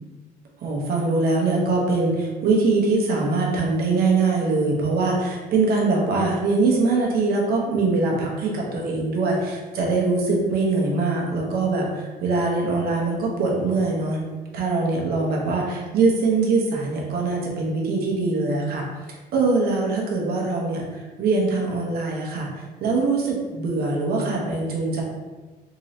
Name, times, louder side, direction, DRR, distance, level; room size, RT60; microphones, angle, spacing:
voice 1, 0.6-14.3 14.5-22.5 22.8-25.0, right 3 dB, 65° right, -2 dB, 1.0 m, -23 dB
3.8 x 3.0 x 2.8 m, 1.3 s
cardioid pair, 110°, 17 cm